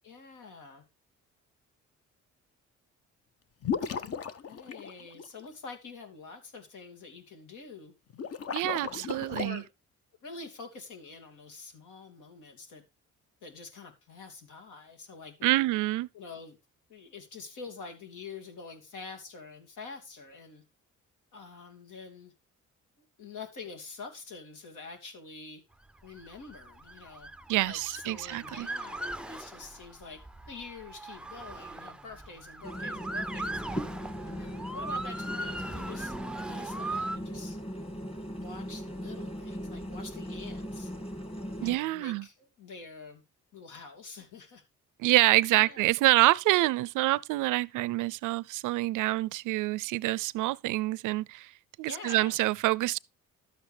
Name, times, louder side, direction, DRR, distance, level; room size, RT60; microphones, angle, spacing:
voice 1, 0.0-0.8 3.8-4.2 4.5-7.9 8.6-9.7 10.2-12.8 13.4-15.7 16.1-16.6 16.9-20.6 21.3-22.3 23.0-25.6 26.0-27.3 27.7-30.2 30.5-33.6 34.3-36.2 36.5-37.6 38.3-40.9 41.6-43.2 43.5-44.6 45.5-45.9 51.9-52.4, left 4 dB, 80° left, 2.7 m, -46 dB
sound 1, 3.6-5.5 8.1-9.5, left 6 dB, 50° left, 1.0 m, -35 dB
voice 2, 8.5-9.6 15.4-16.1 27.5-28.7 41.6-42.2 45.0-51.5 51.8-53.0, right 18 dB, 85° right, 0.5 m, -26 dB
Motor vehicle (road) / Siren, 26.0-37.2, right 2 dB, 5° right, 0.4 m, -39 dB
sound 2, 32.6-41.8, equal, 20° left, 1.9 m, -39 dB
12.0 x 8.2 x 3.4 m
cardioid pair, 90°, 30 cm